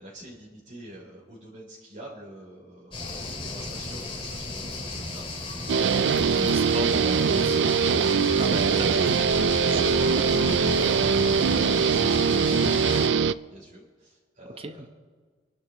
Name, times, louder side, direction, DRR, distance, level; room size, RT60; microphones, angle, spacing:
voice 1, 0.0-6.6 7.7-14.9, right 1 dB, 50° right, -6 dB, 3.6 m, -43 dB
sound 1, 2.9-13.1, left 2 dB, 30° left, 2.5 m, -34 dB
sound 2, 3.0-8.1, left 2 dB, 85° left, 2.0 m, -50 dB
Guitar, 5.7-13.3, right 6 dB, 80° right, 0.4 m, -22 dB
voice 2, 6.3-7.6 8.4-8.9 14.6-14.9, right 1 dB, 35° right, 7 dB, 1.0 m, -34 dB
28.0 x 11.5 x 3.1 m, 1.5 s
head